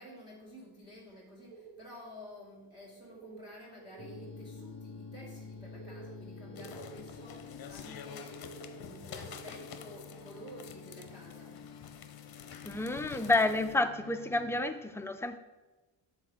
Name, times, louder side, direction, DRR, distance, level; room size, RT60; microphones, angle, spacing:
voice 1, 0.0-11.7, left 1 dB, 10° right, -4 dB, 2.0 m, -51 dB
sound 1, 1.5-12.0 12.3-12.4 12.7-12.8 13.2-13.5, right 5 dB, 45° right, 1.4 m, -54 dB
sound 2, 4.0-14.6, left 5 dB, 30° left, 1.3 m, -49 dB
sound 3, 6.5-13.7, left 7 dB, 50° left, 0.7 m, -49 dB
voice 2, 12.6-15.4, left 2 dB, 5° left, 7 dB, 0.3 m, -30 dB
6.3 x 4.1 x 6.2 m, 1.2 s
cardioid pair, 95°, 48 cm